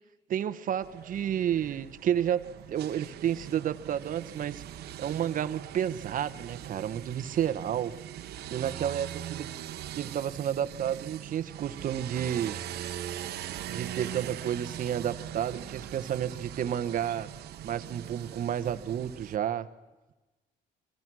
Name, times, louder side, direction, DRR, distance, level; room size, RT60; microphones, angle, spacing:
voice 1, 0.3-4.6 5.0-7.9 8.5-9.5 9.9-12.6 13.7-17.3 17.6-19.7, right 10 dB, 55° right, 12 dB, 1.2 m, -31 dB
sound 1, 0.8-19.4, right 11 dB, 70° right, 1.3 m, -41 dB
25.0 x 24.0 x 6.3 m, 1.1 s
cardioid pair, 110°, 17 cm